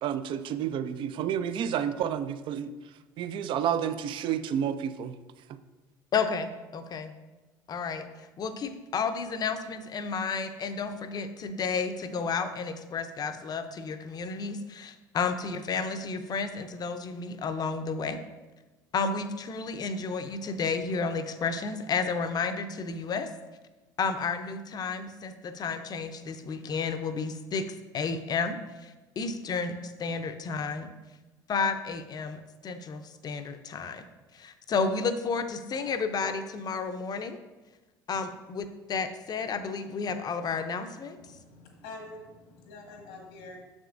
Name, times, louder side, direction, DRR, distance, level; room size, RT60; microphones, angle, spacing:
voice 1, 0.0-2.7 3.2-5.2, right 9 dB, 50° right, 12 dB, 0.4 m, -30 dB
voice 2, 6.1-7.1 7.7-8.1 8.4-18.2 18.9-23.3 24.0-27.7 27.9-30.9 31.5-34.0 34.3-37.4 38.1-41.2, left 5 dB, 40° left, 9 dB, 0.6 m, -32 dB
voice 3, 41.2-43.6, left 2 dB, 85° left, 0 dB, 1.3 m, -46 dB
6.7 x 6.1 x 2.5 m, 1.2 s
hypercardioid pair, 75°, 11 cm